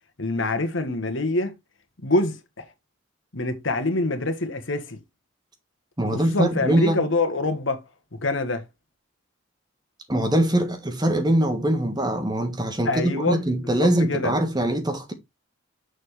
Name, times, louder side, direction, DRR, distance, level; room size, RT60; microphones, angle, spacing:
voice 1, 0.2-1.5 2.0-2.6 3.3-5.0 6.1-7.8 8.2-8.6 12.8-13.4 13.8-14.3, left 2 dB, 70° left, 1.5 m, -25 dB
voice 2, 6.0-7.0 10.1-15.1, right 1 dB, 20° right, 1.5 m, -23 dB
6.8 x 6.4 x 3.3 m
head